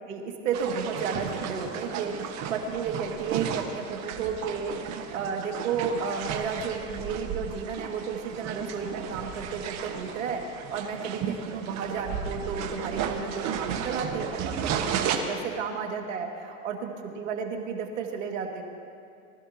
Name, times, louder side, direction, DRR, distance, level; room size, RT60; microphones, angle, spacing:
voice 1, 0.1-18.6, right 5 dB, 80° right, 2 dB, 2.3 m, -33 dB
sound 1, 0.5-15.2, right 8 dB, 45° right, 1.5 m, -34 dB
24.0 x 13.5 x 3.0 m, 2.4 s
hypercardioid pair, 110°, 39 cm